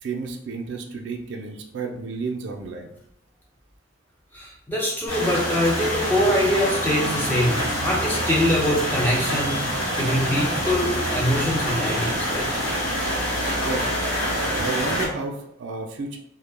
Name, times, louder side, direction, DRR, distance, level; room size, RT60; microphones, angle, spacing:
voice 1, 0.0-2.9 13.6-13.9 14.2-16.2, right 4 dB, 60° right, 3 dB, 0.3 m, -31 dB
voice 2, 4.3-12.5, left 1 dB, 10° left, -4 dB, 0.5 m, -24 dB
sound 1, 5.1-15.1, equal, 70° left, 1.2 m, -26 dB
sound 2, 6.1-13.7, equal, 45° left, 1.1 m, -41 dB
2.1 x 2.1 x 3.2 m, 0.76 s
head